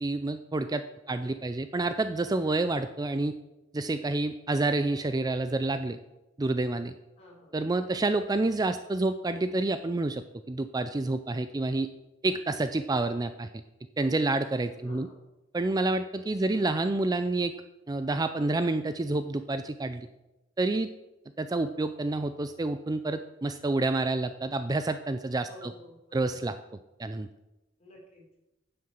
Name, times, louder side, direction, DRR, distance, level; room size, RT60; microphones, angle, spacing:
voice 1, 0.0-3.3 3.7-6.0 6.4-6.9 7.5-11.9 12.2-13.5 14.0-15.1 15.5-17.5 17.9-20.1 20.6-20.9 21.4-25.7 26.1-26.6 27.0-27.3, right 2 dB, 20° right, 10 dB, 0.4 m, -28 dB
voice 2, 7.2-7.5 14.8-15.2 16.3-16.8 25.5-26.2 27.8-28.4, left 1 dB, 35° left, -4 dB, 4.8 m, -52 dB
9.6 x 7.8 x 7.0 m, 0.98 s
head